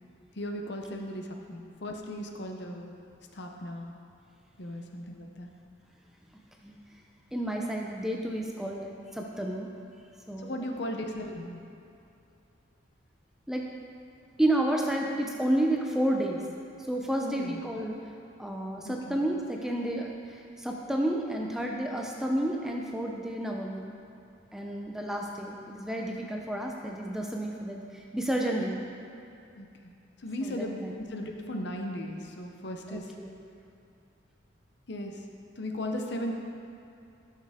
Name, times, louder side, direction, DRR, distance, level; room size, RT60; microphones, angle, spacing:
voice 1, 0.4-2.9 3.3-3.9 4.6-5.5 10.4-11.6 17.2-17.6 18.8-19.2 29.5-29.9 30.2-33.1 34.9-35.2 35.6-36.3, left 1 dB, 55° left, 3 dB, 0.8 m, -37 dB
voice 2, 7.3-9.7 10.3-10.7 13.5-13.7 14.4-16.4 16.8-18.0 18.4-23.9 24.5-28.8 30.4-30.9 32.9-33.3, right 1 dB, ahead, 0 dB, 0.5 m, -31 dB
12.5 x 6.6 x 3.6 m, 2.6 s
head